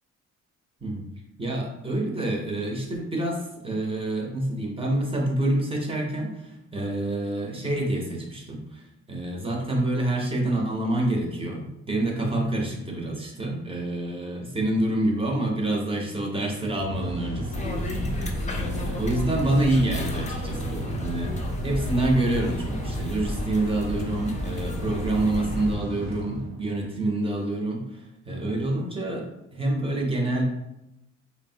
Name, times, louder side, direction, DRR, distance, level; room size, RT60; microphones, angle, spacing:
voice 1, 1.4-8.8 9.1-21.3 21.6-30.4, right 1 dB, 20° right, 0 dB, 0.7 m, -27 dB
Mechanical fan, 16.4-26.9, equal, 85° right, 0.9 m, -34 dB
sound 1, 17.5-25.8, left 1 dB, 25° left, 0.4 m, -33 dB
2.9 x 2.1 x 2.7 m, 0.87 s
cardioid pair, 90°, 30 cm